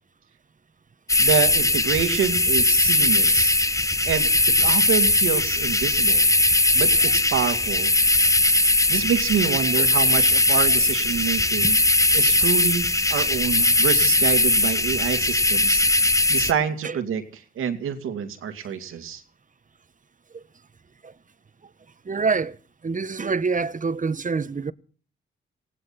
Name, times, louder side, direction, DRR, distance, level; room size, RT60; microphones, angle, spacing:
sound 1, 1.1-16.5, left 2 dB, 15° left, 1.3 m, -20 dB
voice 1, 1.2-3.6 4.0-4.3 4.6-6.3 6.7-7.9 8.9-11.8 12.1-15.8 16.3-17.2 17.6-19.2, right 8 dB, 85° right, 2.4 m, -27 dB
voice 2, 22.0-22.6 22.8-24.7, right 4 dB, 40° right, 1.2 m, -26 dB
19.5 x 17.0 x 4.3 m
supercardioid pair, 55°, 21 cm